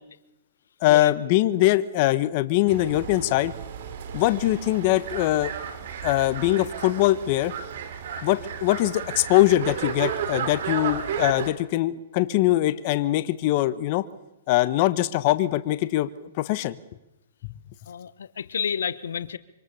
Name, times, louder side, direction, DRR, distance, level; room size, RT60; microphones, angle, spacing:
voice 1, 0.8-3.5 4.1-5.5 6.0-7.5 8.2-14.1 14.5-16.8, left 15 dB, 40° left, 12 dB, 1.3 m, -22 dB
sound 1, 2.7-11.5, right 7 dB, 60° right, 3.4 m, -33 dB
voice 2, 17.9-19.4, left 7 dB, 85° left, 14 dB, 1.3 m, -30 dB
26.0 x 25.5 x 7.1 m, 0.92 s
hypercardioid pair, 150°, 0 cm